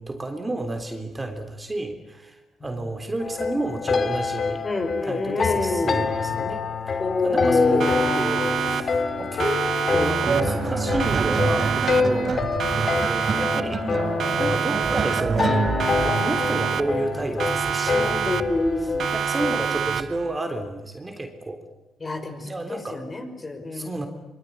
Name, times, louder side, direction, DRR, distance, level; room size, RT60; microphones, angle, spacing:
voice 1, 0.0-4.6 5.0-7.9 8.1-9.6 9.9-12.5 12.7-21.6 22.4-23.0 23.7-24.1, right 2 dB, 20° right, 6 dB, 3.4 m, -31 dB
sound 1, 3.2-19.6, left 4 dB, 45° left, 2.6 m, -27 dB
voice 2, 4.6-6.0 7.0-8.1 14.6-14.8 17.9-19.1 22.0-24.1, left 3 dB, 30° left, 6 dB, 5.6 m, -26 dB
Siren, 7.8-9.1 9.4-10.7 11.0-12.3 12.6-13.9 14.2-15.5 15.8-17.1 17.4-18.7 19.0-20.3, right 8 dB, 60° right, 1.0 m, -27 dB
sound 2, 10.3-19.0 20.0-20.2, right 4 dB, 40° right, 3.2 m, -28 dB
24.5 x 24.0 x 9.7 m, 0.99 s
cardioid pair, 90°, 0 cm